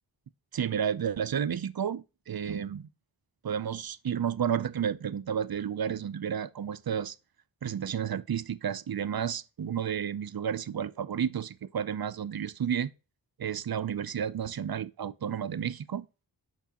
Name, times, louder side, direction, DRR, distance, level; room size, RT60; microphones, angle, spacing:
voice 1, 0.5-2.9 3.4-7.2 7.6-12.9 13.4-16.1, right 8 dB, 55° right, 0.5 m, -31 dB
6.9 x 5.4 x 2.8 m
wide cardioid pair, 45°, 45 cm